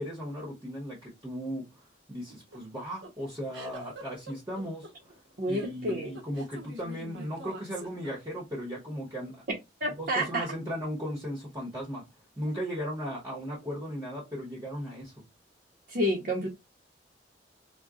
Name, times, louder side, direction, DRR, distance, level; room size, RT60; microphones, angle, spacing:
voice 1, 0.0-4.9 5.5-9.4 10.0-12.0 12.4-15.1, equal, 20° right, 1.0 m, -36 dB
sound 1, 2.3-8.6, right 1 dB, 85° right, 1.0 m, -45 dB
voice 2, 5.4-6.1 9.8-10.4 15.9-16.5, equal, 55° right, 0.8 m, -29 dB
3.8 x 2.2 x 2.3 m
head